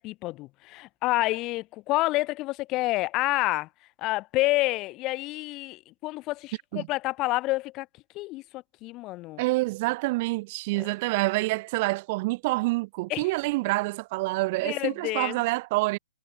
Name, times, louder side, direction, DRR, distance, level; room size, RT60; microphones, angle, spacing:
voice 1, 0.0-3.7 4.0-7.9 8.1-9.4 10.8-10.9 13.1-13.3 14.6-15.4, left 19 dB, 20° left, 3.7 m, -28 dB
voice 2, 9.4-16.0, right 23 dB, 30° right, 2.1 m, -27 dB
hypercardioid pair, 170°, 0 cm